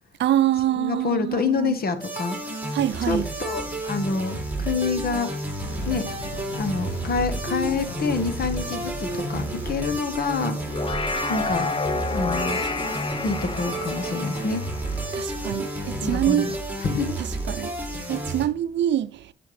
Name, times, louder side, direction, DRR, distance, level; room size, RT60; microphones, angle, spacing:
voice 1, 0.2-1.8 2.7-3.3 15.1-16.5 17.2-19.3, right 12 dB, 65° right, 0.6 m, -25 dB
voice 2, 0.7-2.5 3.0-5.3 5.9-6.1 6.6-10.6 11.3-11.7 12.1-12.7 13.2-14.6 16.0-17.1 17.6-17.7, left 4 dB, 50° left, 1.5 m, -27 dB
sound 1, 2.0-18.5, right 2 dB, 10° right, 3.0 m, -31 dB
sound 2, 5.6-10.0, left 8 dB, 80° left, 1.0 m, -39 dB
sound 3, 10.5-16.1, left 3 dB, 25° left, 0.8 m, -30 dB
10.5 x 5.9 x 3.3 m
cardioid pair, 90°, 20 cm